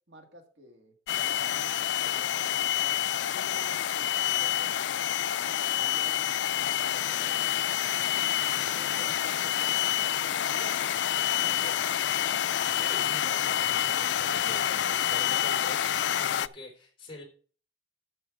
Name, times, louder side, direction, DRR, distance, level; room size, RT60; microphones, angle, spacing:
voice 1, 0.1-0.9 1.3-2.7 3.3-5.2 5.4-7.5 8.5-12.0, equal, 80° right, 4 dB, 2.0 m, -51 dB
sound 1, 1.1-16.5, left 11 dB, 80° left, 0.4 m, -28 dB
voice 2, 8.4-9.1 12.8-17.2, left 2 dB, 30° left, 2 dB, 3.9 m, -46 dB
13.0 x 5.5 x 4.8 m, 0.41 s
head